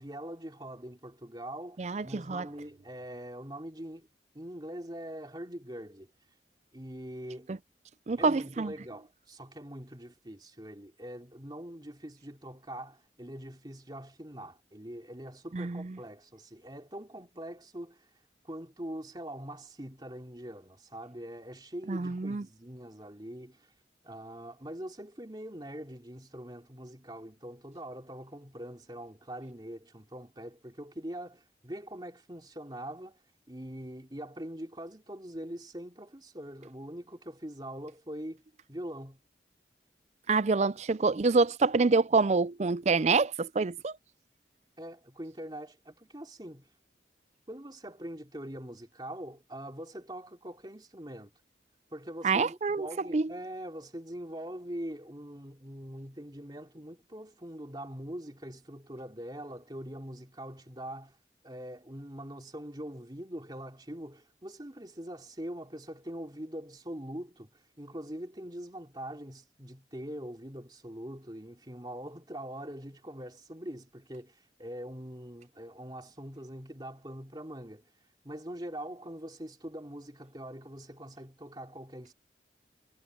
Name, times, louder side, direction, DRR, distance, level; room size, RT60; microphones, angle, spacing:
voice 1, 0.0-4.1 4.3-6.1 6.7-7.5 8.2-18.1 18.4-23.7 24.0-33.2 33.5-38.4 38.7-39.2 44.8-46.7 47.5-51.3 51.9-61.2 61.4-77.9 78.2-82.1, right 1 dB, 25° right, 3.0 m, -43 dB
voice 2, 1.8-2.5 7.5-7.6 8.1-8.7 15.5-16.0 21.9-22.4 40.3-44.0 52.2-52.9 53.1-53.3, right 4 dB, 40° right, 0.4 m, -26 dB
head